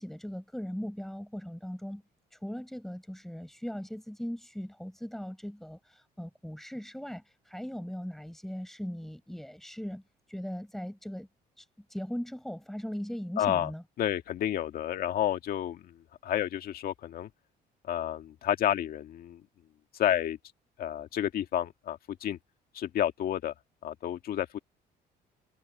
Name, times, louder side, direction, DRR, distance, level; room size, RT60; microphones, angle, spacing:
voice 1, 0.0-2.0 2.3-10.0 10.3-11.3 11.6-13.8, equal, ahead, 7.1 m, -39 dB
voice 2, 13.4-13.7 14.0-15.9 16.2-17.3 17.8-19.4 19.9-20.4 20.8-22.4 22.7-23.5 23.8-24.6, left 11 dB, 60° left, 1.9 m, -30 dB
cardioid pair, 110°, 17 cm